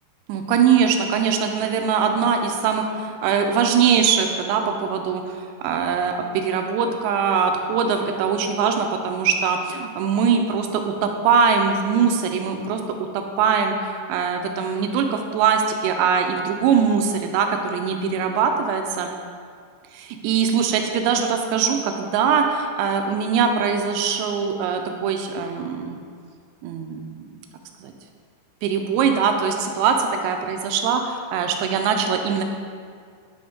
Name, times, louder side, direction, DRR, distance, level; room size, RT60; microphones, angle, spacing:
voice 1, 0.3-12.8 13.1-19.1 19.9-26.0 26.6-27.4 27.8-27.9 28.6-32.4, right 6 dB, 85° right, 5 dB, 2.6 m, -22 dB
9.3 x 5.3 x 3.5 m, 2.1 s
omnidirectional pair, 5.3 m